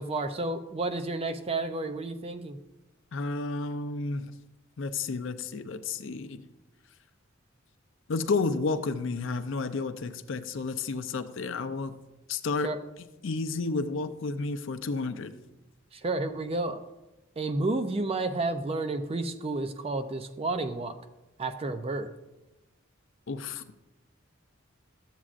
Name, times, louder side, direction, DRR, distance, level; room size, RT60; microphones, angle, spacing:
voice 1, 0.0-2.6 12.6-12.8 16.0-16.8 17.4-21.0 21.4-22.1, right 2 dB, 30° right, 9 dB, 0.4 m, -31 dB
voice 2, 3.1-4.3 4.8-6.4 8.1-12.0 12.3-12.7 13.2-15.3 23.3-23.6, left 3 dB, 65° left, 10 dB, 0.5 m, -31 dB
12.5 x 7.3 x 2.5 m, 1.0 s
head